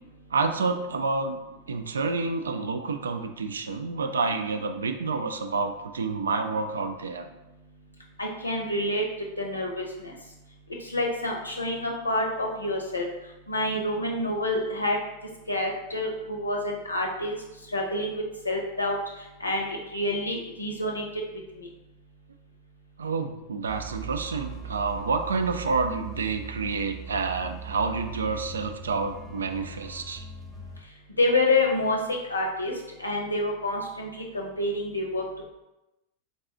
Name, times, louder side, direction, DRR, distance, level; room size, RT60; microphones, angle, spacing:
voice 1, 0.3-1.4 1.7-7.3 23.0-30.2, right 4 dB, 70° right, 7 dB, 0.3 m, -29 dB
voice 2, 8.2-9.0 9.4-10.1 10.9-13.1 13.5-15.0 15.5-17.4 17.7-19.0 19.4-21.0 21.6-21.7 31.2-32.0 32.3-32.7 33.0-35.2, left 2 dB, 80° left, 0 dB, 0.7 m, -27 dB
sound 1, 23.7-30.8, right 5 dB, 5° left, 0.5 m, -40 dB
3.8 x 2.3 x 3.6 m, 0.96 s
figure-of-eight pair, 90°, 0 cm